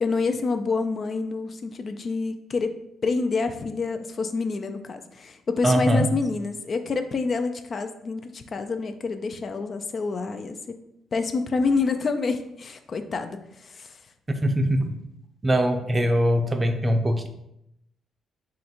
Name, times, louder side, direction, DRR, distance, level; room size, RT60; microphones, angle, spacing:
voice 1, 0.0-2.7 3.0-10.8 11.1-14.0, left 4 dB, 45° left, 7 dB, 0.4 m, -27 dB
voice 2, 5.6-6.1 14.4-14.9 15.4-17.3, equal, 20° right, 6 dB, 0.5 m, -22 dB
3.8 x 2.5 x 4.3 m, 0.80 s
cardioid pair, 90°, 0 cm